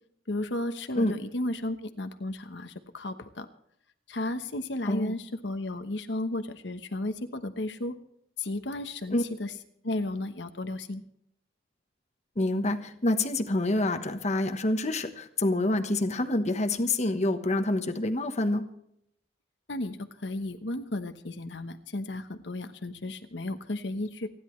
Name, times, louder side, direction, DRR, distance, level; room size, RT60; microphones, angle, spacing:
voice 1, 0.3-3.5 4.1-8.0 8.4-9.6 9.8-11.0 19.7-24.3, left 2 dB, 70° left, 8 dB, 1.1 m, -34 dB
voice 2, 12.4-18.6, left 2 dB, 40° left, 6 dB, 1.2 m, -27 dB
29.5 x 11.0 x 3.2 m, 0.71 s
head